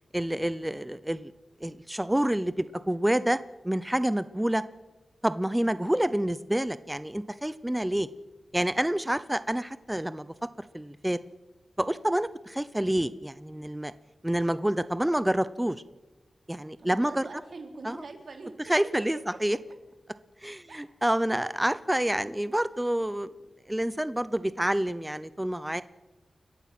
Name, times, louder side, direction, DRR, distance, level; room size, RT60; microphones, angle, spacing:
voice 1, 0.1-1.3 1.6-3.4 3.6-4.6 5.2-8.1 8.5-10.3 10.7-11.2 11.8-13.9 14.2-15.8 16.5-17.3 17.8-18.0 18.7-19.6 20.4-23.3 23.7-25.8, right 1 dB, 10° right, 14 dB, 0.6 m, -28 dB
voice 2, 16.8-18.5 19.7-19.8 20.7-20.8, right 3 dB, 70° right, 3 dB, 3.8 m, -44 dB
29.5 x 14.5 x 6.0 m, 1.1 s
wide cardioid pair, 105°, 0 cm